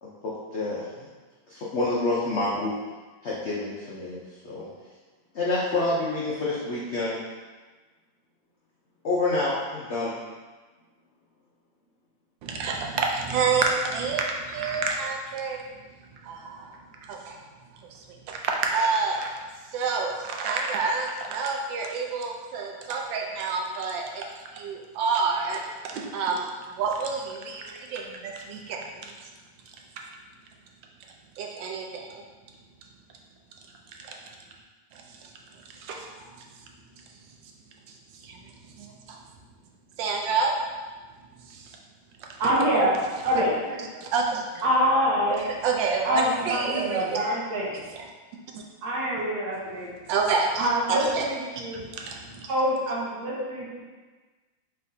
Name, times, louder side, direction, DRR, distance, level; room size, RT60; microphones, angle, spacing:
voice 1, 0.0-1.1 1.5-2.7 3.2-4.7 5.3-7.2 9.0-10.2, left 2 dB, 75° left, -6 dB, 0.6 m, -28 dB
voice 2, 12.4-15.6 16.2-16.7 17.1-17.4 18.3-19.3 19.7-24.2 24.5-29.1 31.4-32.2 34.0-34.1 34.9-35.0 35.8-36.4 38.2-38.4 38.8-39.2 40.0-40.5 41.5-41.7 44.1-44.4 45.3-47.0 47.9-48.0 48.5-48.6 50.1-51.2 51.5-52.5, right 4 dB, 80° right, 1 dB, 1.4 m, -28 dB
voice 3, 42.4-42.9 43.2-43.6 43.9-44.0 44.6-45.5 46.0-47.8 48.8-49.9 50.6-51.8 52.5-53.8, equal, 60° right, -6 dB, 1.4 m, -25 dB
4.3 x 4.1 x 2.7 m, 1.3 s
omnidirectional pair, 2.0 m